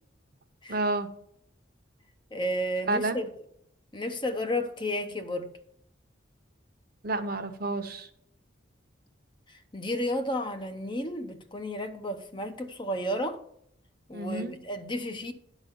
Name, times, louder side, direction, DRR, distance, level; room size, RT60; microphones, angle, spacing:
voice 1, 0.7-1.1 2.9-3.2 7.0-8.1 14.1-14.5, right 2 dB, 50° right, 0.9 m, -30 dB
voice 2, 2.3-3.3 3.9-5.5 9.5-13.4 14.1-15.3, left 1 dB, 25° left, 0.7 m, -32 dB
11.0 x 4.1 x 7.0 m
head